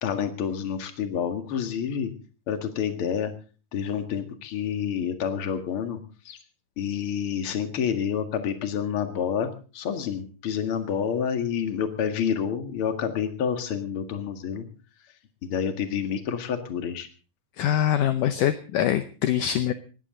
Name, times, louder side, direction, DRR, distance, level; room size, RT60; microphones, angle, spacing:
voice 1, 0.0-2.1 2.5-3.3 3.7-6.0 6.3-6.4 6.8-9.5 9.7-14.7 15.4-17.1, left 8 dB, 45° left, 7 dB, 2.2 m, -28 dB
voice 2, 17.6-19.7, left 11 dB, 75° left, 11 dB, 2.2 m, -24 dB
20.0 x 15.5 x 3.8 m, 0.37 s
omnidirectional pair, 4.3 m